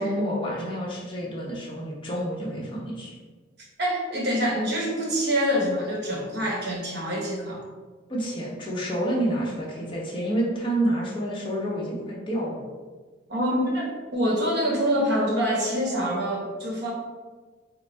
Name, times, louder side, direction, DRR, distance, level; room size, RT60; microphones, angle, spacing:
voice 1, 0.0-3.1 8.1-12.6, right 1 dB, 25° left, -5 dB, 1.0 m, -28 dB
voice 2, 3.8-7.6 13.3-16.9, equal, 60° right, -2 dB, 1.0 m, -25 dB
4.0 x 2.1 x 4.4 m, 1.4 s
head